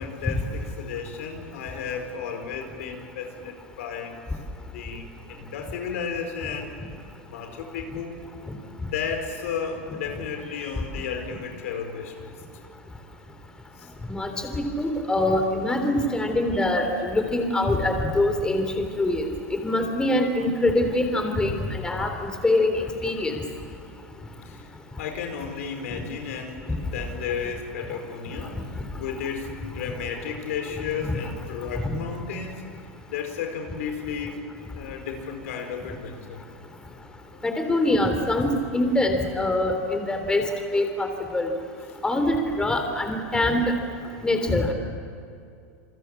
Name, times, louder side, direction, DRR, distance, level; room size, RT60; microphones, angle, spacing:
voice 1, 0.0-4.2 4.6-6.7 7.2-8.2 8.8-12.6 13.8-13.9 22.1-22.2 23.2-23.3 24.4-24.7 25.0-28.6 29.0-32.6 33.1-34.4 34.7-36.4 37.3-37.4, left 6 dB, 75° left, 5 dB, 4.7 m, -33 dB
voice 2, 14.5-23.4 31.0-31.2 31.8-32.0 37.4-40.4 40.7-41.1 41.3-41.5 42.0-43.7 44.2-44.7, left 1 dB, 10° left, 5 dB, 3.5 m, -24 dB
28.0 x 22.0 x 8.6 m, 2.4 s
hypercardioid pair, 115°, 8 cm